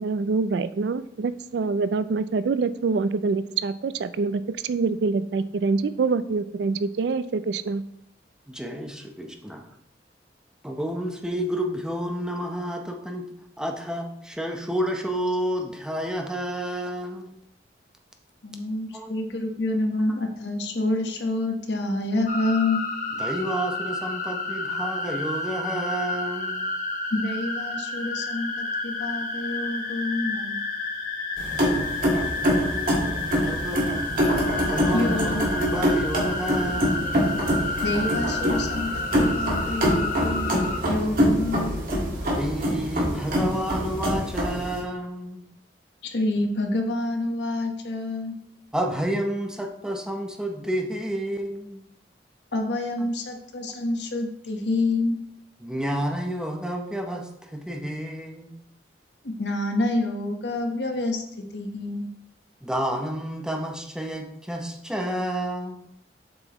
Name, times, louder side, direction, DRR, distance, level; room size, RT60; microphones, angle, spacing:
voice 1, 0.0-7.8, right 4 dB, 70° right, 0.4 m, -25 dB
voice 2, 8.5-9.7 10.6-13.3 13.6-17.3 18.9-19.1 23.2-26.6 32.4-34.1 34.7-37.1 42.4-45.4 48.7-51.8 55.6-58.5 62.6-65.8, right 1 dB, 5° right, 0.7 m, -30 dB
voice 3, 18.4-22.8 27.1-30.6 34.9-35.5 37.8-41.7 46.0-48.3 52.5-55.2 59.2-61.2 61.5-62.1, left 2 dB, 75° left, 1.1 m, -27 dB
sound 1, 22.3-40.8, left 3 dB, 50° left, 1.0 m, -31 dB
sound 2, 31.4-44.8, equal, 50° right, 1.9 m, -25 dB
7.7 x 5.9 x 3.0 m
head